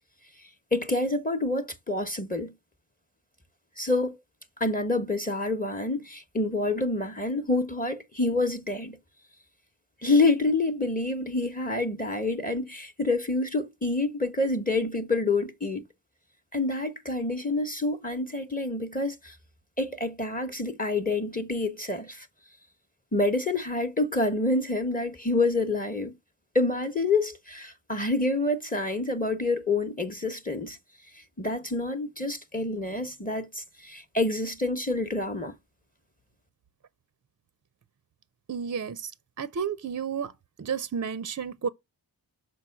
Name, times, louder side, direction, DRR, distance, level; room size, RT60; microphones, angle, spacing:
voice 1, 0.7-2.5 3.8-4.2 4.6-9.0 10.0-15.8 16.5-19.4 19.8-22.3 23.1-26.1 26.5-30.8 31.1-35.6, left 2 dB, 20° left, 0.9 m, -27 dB
voice 2, 38.5-39.1 39.4-40.3 40.6-41.7, right 6 dB, 40° right, 0.5 m, -31 dB
6.1 x 4.5 x 5.7 m
cardioid pair, 60°, 41 cm